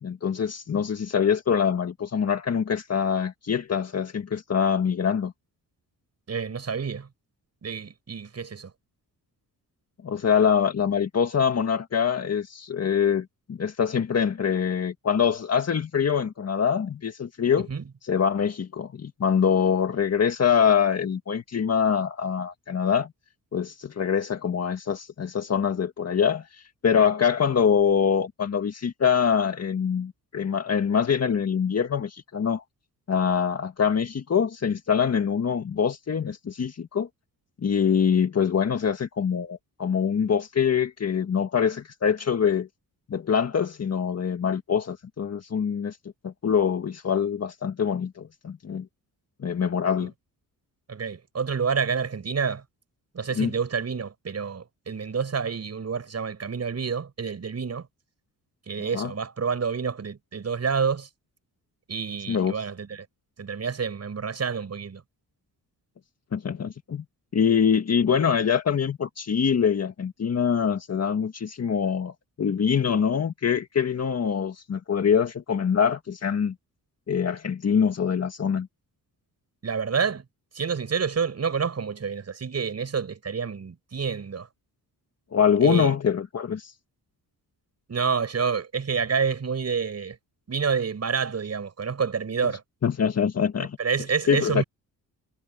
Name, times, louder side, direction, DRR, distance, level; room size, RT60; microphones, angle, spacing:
voice 1, 0.0-5.3 10.0-17.7 18.0-23.1 23.5-26.4 26.8-32.6 33.1-37.1 37.6-42.7 43.1-46.0 46.2-48.8 49.4-50.1 53.4-53.5 58.9-59.1 62.3-62.5 66.3-67.0 67.3-72.1 72.4-76.5 77.1-78.7 85.3-86.7 92.8-93.8 94.3-94.6, left 7 dB, 40° left, 1.8 m, -24 dB
voice 2, 6.3-7.1 7.6-8.7 17.7-17.9 50.9-52.6 53.1-57.9 58.7-61.1 61.9-63.1 63.4-65.0 79.6-80.2 80.5-84.5 85.6-86.0 87.9-90.2 90.5-92.6 93.8-94.6, right 6 dB, 40° right, 7.1 m, -28 dB
cardioid pair, 110°, 37 cm